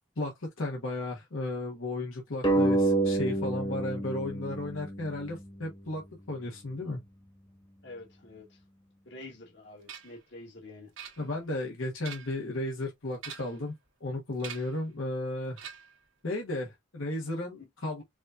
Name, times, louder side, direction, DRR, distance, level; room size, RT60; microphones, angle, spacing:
voice 1, 0.2-6.0 6.3-7.0 11.2-13.7 14.0-15.6 16.2-18.0, left 2 dB, 90° left, 1.2 m, -34 dB
sound 1, 2.4-5.6, right 2 dB, 20° left, 1.1 m, -28 dB
voice 2, 7.8-8.6 9.0-10.9 17.6-17.7, left 2 dB, 60° left, 1.4 m, -47 dB
sound 2, 9.9-10.2 11.0-11.5 11.9-12.5 13.1-13.7 14.4-14.8 15.6-16.1, right 8 dB, 80° right, 1.2 m, -45 dB
4.9 x 2.7 x 2.4 m
head